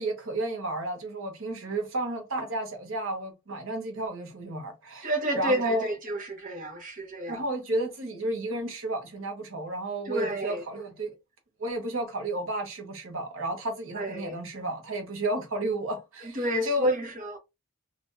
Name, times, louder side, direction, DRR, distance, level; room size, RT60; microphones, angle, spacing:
voice 1, 0.0-5.9 7.3-11.1 11.6-16.9, right 2 dB, 65° right, 0.9 m, -32 dB
voice 2, 5.0-7.4 10.1-10.6 13.9-14.4 16.3-17.4, equal, 40° right, 1.0 m, -29 dB
3.6 x 2.4 x 2.6 m
head